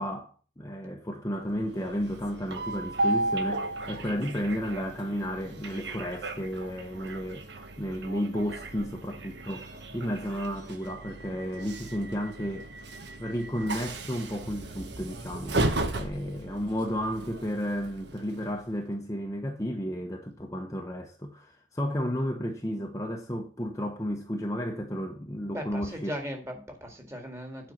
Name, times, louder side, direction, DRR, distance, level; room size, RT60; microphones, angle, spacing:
voice 1, 0.0-12.7 13.2-26.1, equal, 15° left, 0.9 m, -33 dB
Train, 1.5-18.8, right 2 dB, 60° right, 1.3 m, -35 dB
voice 2, 25.5-27.7, equal, 15° right, 2.1 m, -38 dB
9.2 x 5.4 x 7.2 m
head